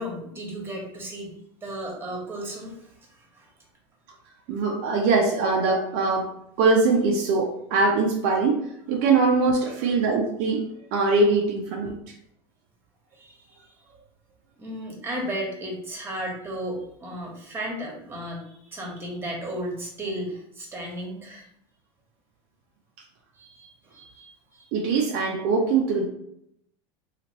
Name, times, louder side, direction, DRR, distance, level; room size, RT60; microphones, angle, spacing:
voice 1, 0.0-1.3 1.6-3.5 9.8-9.9 13.1-13.7 14.6-21.5 23.4-24.3 24.5-24.7, right 1 dB, 15° right, -2 dB, 1.2 m, -34 dB
voice 2, 4.5-6.3 6.6-11.9 24.7-26.1, right 3 dB, 60° right, 0 dB, 0.6 m, -22 dB
2.9 x 2.4 x 2.9 m, 0.74 s
hypercardioid pair, 100°, 14 cm